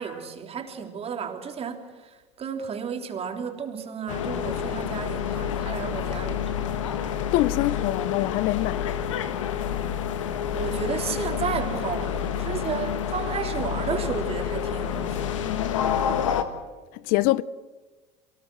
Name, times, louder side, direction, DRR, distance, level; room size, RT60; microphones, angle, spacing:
voice 1, 0.0-6.7 10.5-15.3, right 7 dB, 40° right, 3.4 m, -33 dB
sound 1, 4.1-16.4, left 8 dB, 90° left, 1.5 m, -28 dB
voice 2, 7.3-9.0 15.4-16.0 16.9-17.4, left 18 dB, 65° left, 0.6 m, -25 dB
23.0 x 19.0 x 7.7 m
hypercardioid pair, 80°, 16 cm